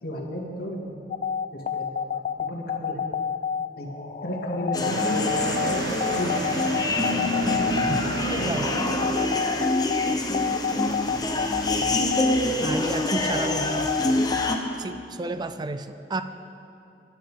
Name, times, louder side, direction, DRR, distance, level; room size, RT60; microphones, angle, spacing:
voice 1, 0.0-1.0 1.5-3.1 3.8-3.9 4.2-6.6 7.5-8.4 8.7-8.9 9.5-9.6 10.0-10.1 10.7-10.8, equal, 60° left, -1 dB, 2.1 m, -34 dB
sound 1, 1.1-14.6, left 6 dB, 45° left, 0.4 m, -29 dB
sound 2, 4.7-14.6, left 1 dB, 25° left, 0.9 m, -26 dB
sound 3, 4.8-9.9, right 2 dB, 65° right, 1.1 m, -33 dB
voice 2, 12.6-13.9 14.8-16.2, right 3 dB, 25° right, 9 dB, 0.4 m, -31 dB
22.0 x 10.5 x 3.6 m, 2.7 s
head